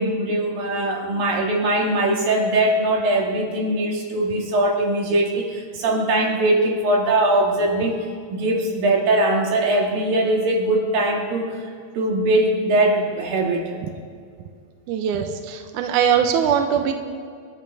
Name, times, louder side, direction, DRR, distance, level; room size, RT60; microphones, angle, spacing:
voice 1, 0.0-7.9 8.3-11.6 12.0-13.7, right 1 dB, 60° right, 0 dB, 3.7 m, -21 dB
voice 2, 14.9-16.9, right 8 dB, 80° right, 5 dB, 1.8 m, -21 dB
29.0 x 12.5 x 3.5 m, 2.2 s
omnidirectional pair, 4.7 m